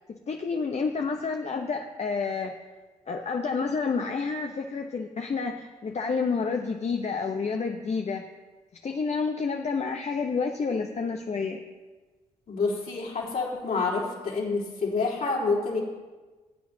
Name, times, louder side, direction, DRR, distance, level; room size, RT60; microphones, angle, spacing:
voice 1, 0.1-2.5 3.1-8.2 8.8-11.6, left 4 dB, 40° left, 4 dB, 0.9 m, -29 dB
voice 2, 12.5-15.8, left 4 dB, 60° left, -4 dB, 3.6 m, -28 dB
17.0 x 9.3 x 2.8 m, 1.3 s
hypercardioid pair, 45°, 16 cm